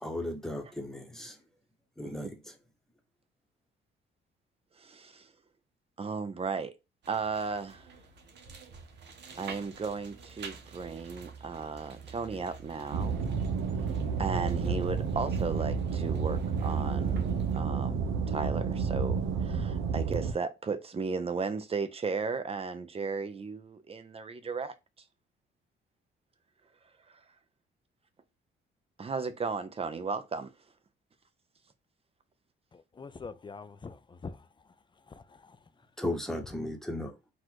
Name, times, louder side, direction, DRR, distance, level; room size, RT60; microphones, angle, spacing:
voice 1, 0.0-1.4 2.0-2.5 36.0-37.2, left 1 dB, ahead, 1.1 m, -36 dB
voice 2, 4.8-5.3 6.0-6.7 7.1-7.9 9.3-13.2 14.2-24.7 29.0-30.5, right 5 dB, 30° right, 0.7 m, -35 dB
sound 1, 7.0-17.6, right 5 dB, 60° right, 1.1 m, -47 dB
sound 2, 12.9-20.3, right 5 dB, 80° right, 0.8 m, -30 dB
voice 3, 32.7-34.4 35.1-35.6, left 4 dB, 25° left, 0.5 m, -45 dB
4.0 x 2.5 x 4.6 m
cardioid pair, 90°, 20 cm